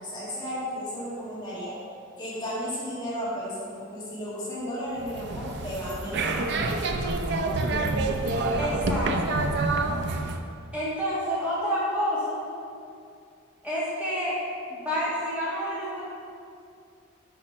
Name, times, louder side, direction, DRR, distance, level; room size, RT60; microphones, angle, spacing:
voice 1, 0.0-1.8 2.2-6.6, equal, 20° left, -8 dB, 1.8 m, -34 dB
sound 1, 5.0-10.4, right 2 dB, 60° right, 0.5 m, -27 dB
voice 2, 8.6-9.4 10.7-12.4 13.6-14.4 14.7-16.0, equal, 5° right, -9 dB, 1.7 m, -29 dB
8.4 x 5.0 x 4.4 m, 2.4 s
head